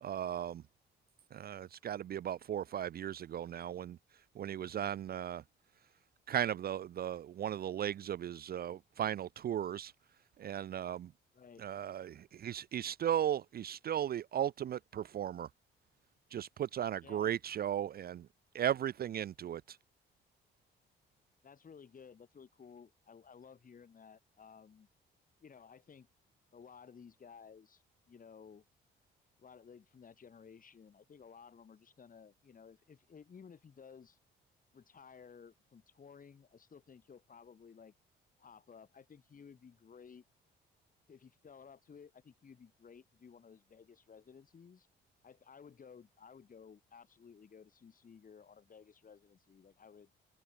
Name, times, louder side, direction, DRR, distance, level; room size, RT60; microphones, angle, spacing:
voice 1, 0.0-0.6 1.3-4.0 4.4-5.4 6.3-9.9 10.4-11.1 11.6-15.5 16.3-18.3 18.5-19.8, right 10 dB, 50° right, 0.5 m, -36 dB
voice 2, 11.3-11.7 17.0-17.4 21.4-24.9 25.4-26.1 26.5-28.6 29.4-34.2 34.7-37.9 38.4-40.2 41.1-44.9 45.2-50.1, left 6 dB, 45° left, 5.9 m, -56 dB
cardioid pair, 90°, 20 cm